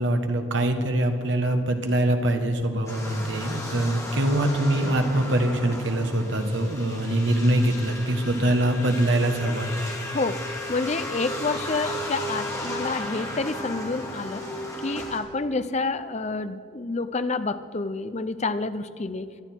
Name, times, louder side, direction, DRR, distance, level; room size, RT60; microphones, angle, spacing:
voice 1, 0.0-9.7, right 1 dB, 65° right, 5 dB, 1.5 m, -23 dB
sound 1, 2.9-15.2, left 1 dB, 15° left, 2.1 m, -35 dB
voice 2, 10.1-14.4 14.8-19.3, left 3 dB, 35° left, 12 dB, 0.6 m, -29 dB
21.0 x 12.0 x 4.5 m, 2.6 s
head